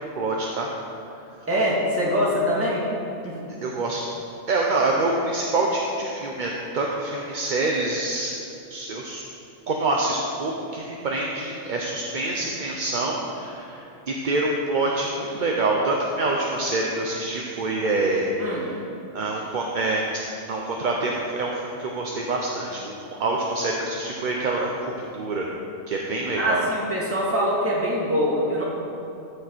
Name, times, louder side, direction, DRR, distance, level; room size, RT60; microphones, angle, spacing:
voice 1, 0.2-0.7 3.6-4.0 4.5-8.3 8.7-9.2 9.7-18.8 19.1-20.0 20.5-22.9 23.2-24.7 25.1-25.5 25.9-26.7, right 2 dB, 45° right, -1 dB, 0.8 m, -26 dB
voice 2, 1.5-2.8 3.2-3.3 18.4-18.8 26.4-28.6, equal, 10° right, -6 dB, 1.8 m, -23 dB
13.0 x 6.7 x 4.5 m, 2.7 s
omnidirectional pair, 1.3 m